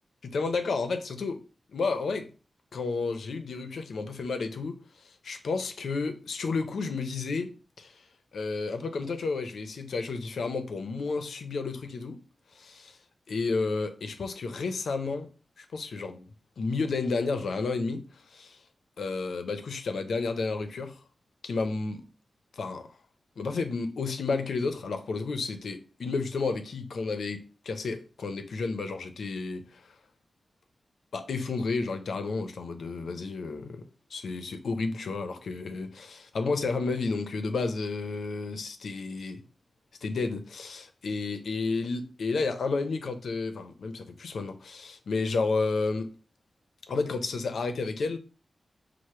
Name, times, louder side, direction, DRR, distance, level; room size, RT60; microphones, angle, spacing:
voice 1, 0.2-1.4 1.7-2.3 2.7-8.0 8.3-12.2 12.5-13.0 13.3-15.3 15.6-18.6 19.0-21.0 21.4-22.0 22.5-22.8 23.4-29.9 31.1-33.8 34.1-39.4 40.0-46.1 46.9-48.2, left 4 dB, 85° left, 0.6 m, -31 dB
4.8 x 2.1 x 4.2 m
wide cardioid pair, 85°, 0 cm